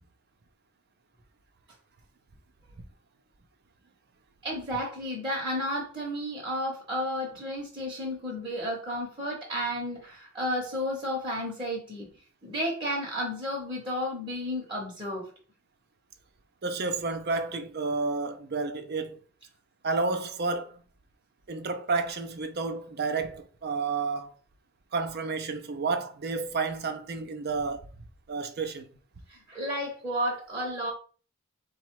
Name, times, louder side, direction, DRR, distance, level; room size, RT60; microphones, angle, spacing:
voice 1, 4.4-12.1 12.4-15.3 29.3-30.9, equal, 20° right, 0.9 m, -32 dB
voice 2, 16.6-19.2 19.8-20.8 21.5-24.3 24.9-27.9 28.3-28.9, right 4 dB, 45° right, 0.6 m, -31 dB
4.1 x 2.4 x 4.6 m
head